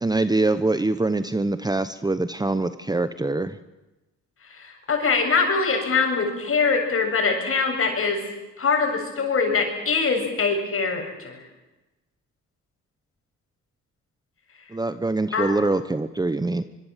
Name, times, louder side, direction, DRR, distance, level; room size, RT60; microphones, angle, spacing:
voice 1, 0.0-3.6 14.7-16.6, right 2 dB, 15° right, 12 dB, 1.0 m, -24 dB
voice 2, 4.5-8.2 8.6-11.4 15.3-15.5, left 4 dB, 45° left, 3 dB, 7.3 m, -23 dB
24.5 x 22.5 x 7.5 m, 1.1 s
cardioid pair, 90°, 30 cm